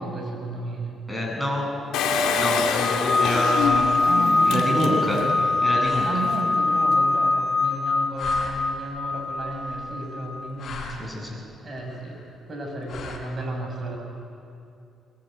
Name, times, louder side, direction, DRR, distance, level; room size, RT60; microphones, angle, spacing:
voice 1, 0.0-0.9 4.0-5.3 6.0-10.8 11.6-14.0, right 1 dB, 40° right, 1 dB, 7.2 m, -33 dB
voice 2, 1.1-1.7 2.3-3.8 4.4-5.2 5.6-6.1 11.0-11.4, left 1 dB, ahead, -1 dB, 7.6 m, -27 dB
Engine, 1.9-5.4 5.9-6.0 6.2-6.3, left 5 dB, 90° left, 2.2 m, -26 dB
sound 1, 2.3-3.2 3.5-4.3 4.8-5.5 5.8-6.4 7.1-7.9 8.1-8.9 9.4-10.1 10.4-11.2 11.8-12.4 12.9-13.2, left 4 dB, 60° left, 5.1 m, -42 dB
sound 2, 2.8-10.5, left 2 dB, 15° left, 4.8 m, -23 dB
22.5 x 22.0 x 9.3 m, 2.5 s
cardioid pair, 90°, 0 cm